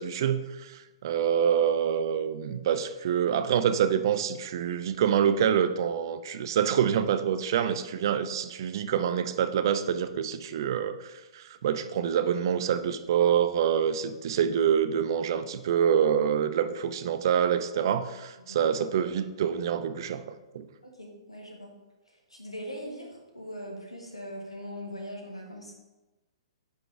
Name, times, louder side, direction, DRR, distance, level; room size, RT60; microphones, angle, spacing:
voice 1, 0.0-20.2 20.5-20.7, right 8 dB, 50° right, 11 dB, 0.4 m, -26 dB
voice 2, 20.8-21.7 22.1-25.7, equal, 85° left, 1 dB, 1.4 m, -41 dB
9.1 x 4.0 x 3.4 m, 1.1 s
figure-of-eight pair, 115°, 3 cm